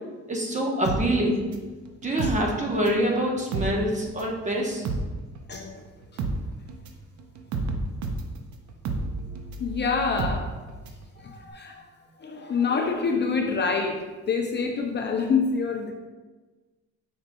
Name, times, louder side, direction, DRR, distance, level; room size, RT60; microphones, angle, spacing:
voice 1, 0.3-1.4 2.0-4.9, right 1 dB, 25° right, -1 dB, 0.9 m, -25 dB
sound 1, 0.9-3.1 3.4-11.1 11.4-11.5, right 3 dB, 70° right, 0.6 m, -31 dB
voice 2, 5.5-5.8 9.6-10.5 11.2-11.8 12.2-15.9, left 5 dB, 35° left, 2 dB, 0.5 m, -26 dB
6.0 x 3.9 x 2.2 m, 1.3 s
cardioid pair, 90°, 30 cm